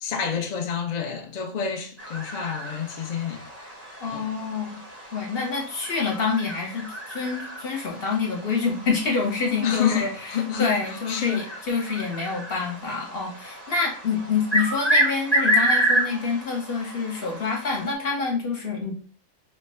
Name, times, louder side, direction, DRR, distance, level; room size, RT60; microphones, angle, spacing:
voice 1, 0.0-3.4 4.1-4.2 9.5-11.6, left 7 dB, 65° left, 0.4 m, -29 dB
sound 1, 2.0-17.9, right 1 dB, 15° left, 0.7 m, -29 dB
voice 2, 4.0-4.8 5.1-18.9, left 4 dB, 50° left, 1.0 m, -27 dB
3.1 x 2.2 x 4.2 m
omnidirectional pair, 1.4 m